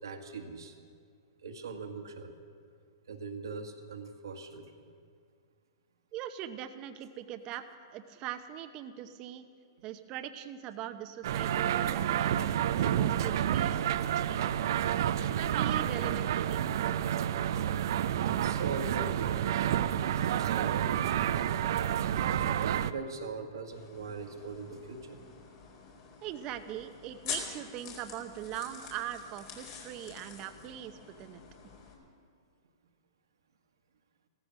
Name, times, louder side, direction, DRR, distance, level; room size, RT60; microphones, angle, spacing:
voice 1, 0.0-0.8 1.4-2.3 3.1-4.9 18.1-21.0 21.2-21.8 22.3-25.2, right 4 dB, 80° right, 5 dB, 1.7 m, -41 dB
voice 2, 6.1-9.4 9.8-12.4 12.8-13.8 15.3-16.6 26.2-31.4, right 11 dB, 40° right, 9 dB, 0.9 m, -41 dB
sound 1, 11.2-22.9, right 10 dB, 65° right, 0.5 m, -29 dB
sound 2, 23.7-31.9, left 6 dB, 55° left, 4.3 m, -46 dB
15.5 x 14.0 x 6.4 m, 2.2 s
hypercardioid pair, 120°, 2 cm